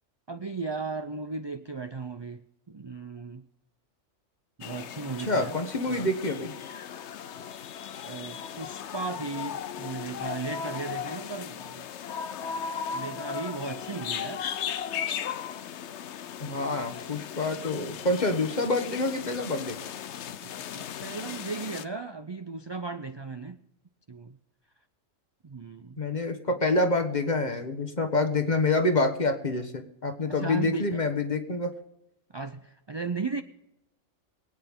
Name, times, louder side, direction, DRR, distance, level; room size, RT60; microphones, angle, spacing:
voice 1, 0.3-3.4 4.6-5.6 5.9-6.1 8.1-11.9 12.9-14.4 20.4-23.6 24.1-24.4 25.4-26.0 26.5-26.6 30.3-30.8 32.3-33.4, right 4 dB, 35° right, 9 dB, 0.4 m, -36 dB
sound 1, 4.6-21.9, left 8 dB, 70° left, 1.0 m, -37 dB
voice 2, 5.2-6.5 16.4-19.8 26.0-31.7, left 2 dB, 35° left, 6 dB, 1.5 m, -27 dB
23.5 x 9.1 x 3.7 m, 0.89 s
omnidirectional pair, 1.3 m